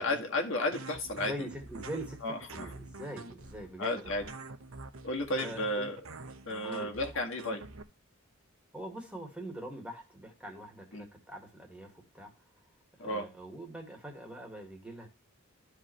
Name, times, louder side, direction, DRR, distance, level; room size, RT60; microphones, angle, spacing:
voice 1, 0.0-1.3 2.2-2.7 3.8-4.2 5.0-6.0 6.5-7.6 10.9-11.1 13.0-13.2, left 1 dB, 60° left, 1 dB, 1.9 m, -33 dB
sound 1, 0.7-7.8, right 3 dB, 70° right, 1.0 m, -46 dB
voice 2, 1.1-4.2 5.3-5.9 6.6-6.9 8.7-12.3 13.0-15.1, right 1 dB, 5° right, 2 dB, 1.9 m, -43 dB
13.0 x 4.9 x 3.0 m, 0.30 s
head